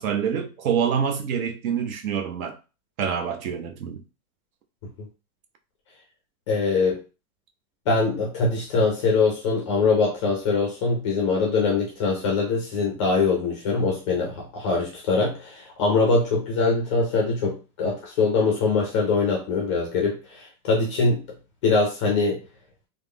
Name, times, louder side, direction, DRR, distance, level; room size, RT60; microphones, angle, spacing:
voice 1, 0.0-2.6 3.0-4.0, right 7 dB, 65° right, 0.8 m, -26 dB
voice 2, 6.5-7.0 7.9-21.2 21.6-22.4, left 4 dB, 25° left, 0.4 m, -23 dB
3.2 x 2.0 x 3.5 m
supercardioid pair, 150°, 44 cm